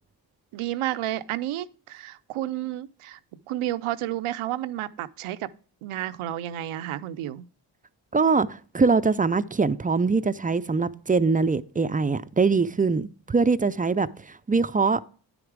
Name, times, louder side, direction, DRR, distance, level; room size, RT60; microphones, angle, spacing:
voice 1, 0.5-3.2 3.5-5.5 5.8-7.4, right 13 dB, 80° right, 0.6 m, -31 dB
voice 2, 8.1-15.1, right 4 dB, 20° right, 0.3 m, -23 dB
9.6 x 5.0 x 4.6 m
supercardioid pair, 40°, 49 cm